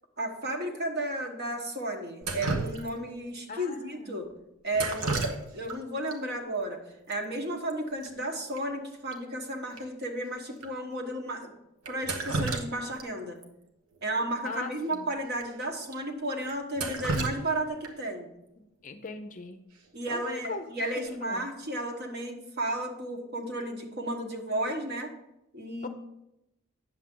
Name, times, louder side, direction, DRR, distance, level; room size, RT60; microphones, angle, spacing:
voice 1, 0.2-4.3 4.6-5.3 5.5-6.8 7.1-11.5 11.9-13.4 14.0-18.3 19.9-25.1 25.5-25.9, right 1 dB, 45° right, 3 dB, 1.2 m, -33 dB
Drip, 2.2-3.2 4.7-5.8 6.1-6.2 7.1-7.2 7.5-7.7 8.0-8.1 8.6-8.7 9.1-9.2 9.8-9.9 10.6-10.7 11.8-13.1 13.4-13.5 14.8-14.9 15.4-15.5 15.9-16.0 16.5-18.1 20.1-20.4 20.8-21.2, right 3 dB, 80° right, 1.1 m, -33 dB
voice 2, 3.5-4.1 14.4-15.0 18.8-19.6 20.1-21.5 25.8-25.9, left 3 dB, 35° left, 7 dB, 0.6 m, -39 dB
9.4 x 7.3 x 3.7 m, 0.86 s
head